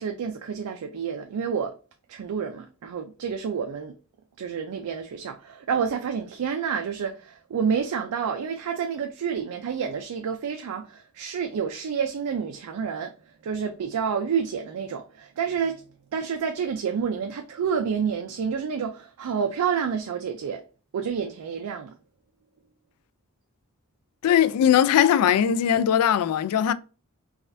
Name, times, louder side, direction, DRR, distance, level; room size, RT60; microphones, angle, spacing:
voice 1, 0.0-1.7 2.1-3.9 4.4-13.1 13.4-15.8 16.1-20.6 20.9-21.9, right 6 dB, 85° right, 0.4 m, -29 dB
voice 2, 24.2-26.7, left 9 dB, 80° left, 0.3 m, -20 dB
4.1 x 2.4 x 2.5 m
head